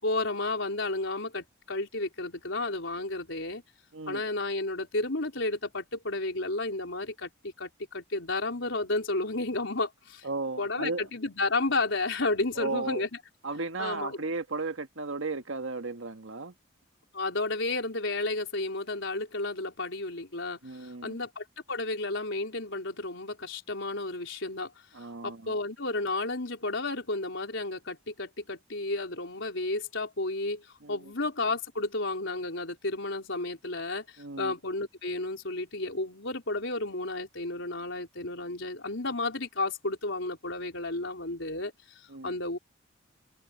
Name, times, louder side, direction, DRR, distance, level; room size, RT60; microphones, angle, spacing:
voice 1, 0.0-3.6 4.1-10.3 10.6-13.1 13.8-14.2 17.1-24.7 25.2-41.7 42.2-42.6, left 2 dB, 70° left, 4.6 m, -32 dB
voice 2, 10.2-11.0 12.5-13.1 13.4-16.5 20.6-21.2 24.9-25.5 30.8-31.0 34.2-34.5 42.1-42.3, right 3 dB, 85° right, 1.6 m, -35 dB
head